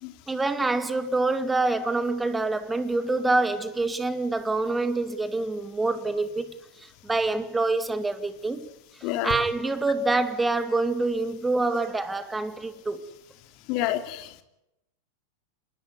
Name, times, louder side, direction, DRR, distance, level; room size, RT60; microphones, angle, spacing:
voice 1, 0.3-8.7 9.2-13.1, right 3 dB, 10° right, 2.4 m, -26 dB
voice 2, 9.0-9.3 13.7-14.4, left 13 dB, 45° left, 2.9 m, -28 dB
26.5 x 21.0 x 9.6 m
figure-of-eight pair, 90°, 0 cm